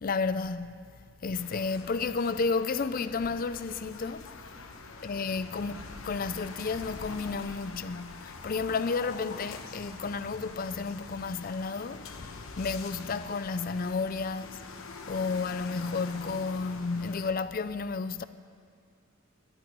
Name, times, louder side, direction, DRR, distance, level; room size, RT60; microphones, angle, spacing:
voice 1, 0.0-0.8 1.2-4.2 5.0-14.6 15.1-18.2, left 4 dB, 40° left, 0.4 m, -32 dB
sound 1, 1.3-17.3, left 3 dB, 80° left, 1.0 m, -45 dB
12.0 x 8.9 x 9.4 m
head